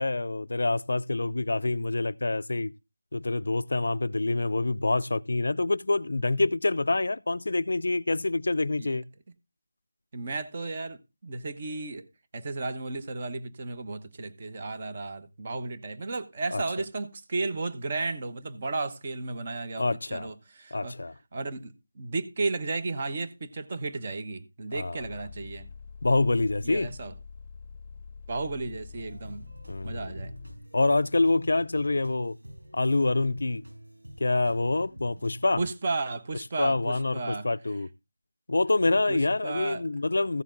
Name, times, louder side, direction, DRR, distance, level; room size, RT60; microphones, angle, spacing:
voice 1, 0.0-2.7 3.1-9.0 16.5-16.6 19.8-20.3 20.7-21.1 24.7-25.1 26.0-26.9 29.7-30.1 30.7-32.4 32.7-33.6 34.2-35.6 36.6-37.9 38.5-40.4, left 2 dB, 65° left, 0.5 m, -26 dB
voice 2, 10.1-12.1 12.3-21.0 21.3-25.7 26.6-27.1 28.3-29.5 29.8-30.3 35.6-37.5 38.9-39.8, right 3 dB, 30° right, 1.1 m, -34 dB
sound 1, 25.0-30.6, left 5 dB, 20° left, 0.8 m, -45 dB
sound 2, 28.9-35.6, equal, 85° right, 6.1 m, -47 dB
14.5 x 7.1 x 3.8 m
figure-of-eight pair, 175°, 0 cm